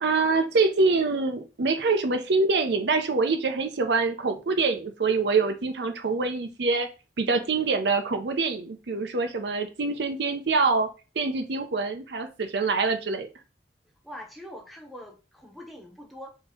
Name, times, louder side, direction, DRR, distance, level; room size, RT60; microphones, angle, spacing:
voice 1, 0.0-6.9 7.2-10.9 11.2-13.3, right 4 dB, 75° right, 7 dB, 0.6 m, -25 dB
voice 2, 14.0-16.4, equal, ahead, 1 dB, 0.8 m, -43 dB
3.7 x 2.8 x 4.3 m, 0.31 s
head